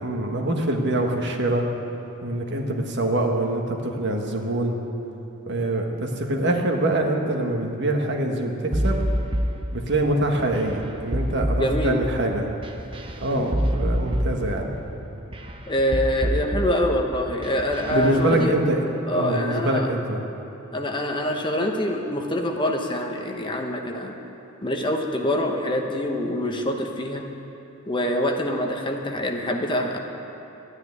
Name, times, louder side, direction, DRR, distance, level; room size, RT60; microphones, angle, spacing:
voice 1, 0.0-1.7 2.2-4.8 5.5-9.0 9.7-12.5 13.2-14.8 17.9-18.8 19.1-20.2, right 1 dB, 55° right, 2 dB, 1.5 m, -24 dB
sound 1, 8.7-18.2, equal, 25° right, 0.9 m, -27 dB
voice 2, 11.6-12.0 13.3-13.5 15.7-18.5 19.1-19.9 20.7-24.1 24.6-27.2 27.9-30.0, left 1 dB, 20° left, 2 dB, 1.0 m, -25 dB
13.0 x 9.6 x 9.7 m, 2.9 s
head